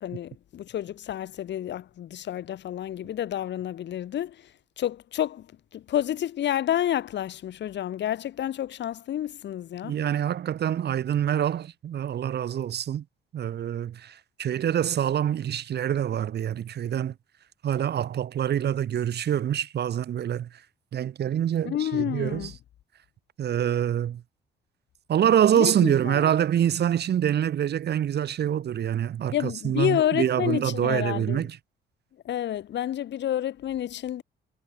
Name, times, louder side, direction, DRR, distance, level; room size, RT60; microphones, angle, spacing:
voice 1, 0.0-4.4 4.8-5.5 5.7-10.0 21.6-22.5 25.5-26.3 29.3-31.5 32.2-34.2, left 11 dB, 65° left, 1.0 m, -29 dB
voice 2, 9.8-13.0 13.3-17.1 17.6-20.5 20.9-22.5 23.4-24.2 25.1-31.6, right 10 dB, 55° right, 1.0 m, -25 dB
cardioid pair, 90°, 20 cm